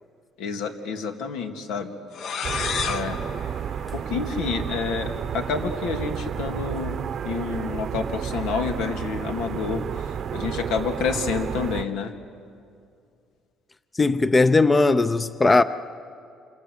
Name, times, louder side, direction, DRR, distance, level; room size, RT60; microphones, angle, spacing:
voice 1, 0.4-1.9 2.8-3.2 3.9-7.0 7.2-10.1 10.3-12.1, left 5 dB, 90° left, 2.4 m, -29 dB
sound 1, 2.1-4.7, left 6 dB, 55° left, 1.2 m, -32 dB
sound 2, 2.4-11.8, right 8 dB, 40° right, 0.8 m, -31 dB
voice 2, 14.0-15.6, left 3 dB, 15° left, 0.6 m, -18 dB
27.5 x 27.0 x 8.0 m
cardioid pair, 140°, 0 cm